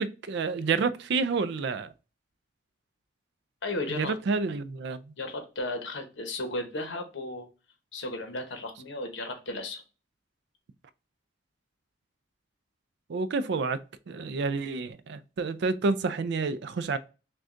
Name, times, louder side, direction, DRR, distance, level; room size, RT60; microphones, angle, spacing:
voice 1, 0.0-1.9 4.0-5.0 13.1-13.8 14.1-17.0, right 4 dB, 60° right, 0.4 m, -29 dB
voice 2, 3.6-4.1 5.2-7.5 7.9-9.8, left 2 dB, 65° left, 1.0 m, -34 dB
6.1 x 2.3 x 2.5 m
head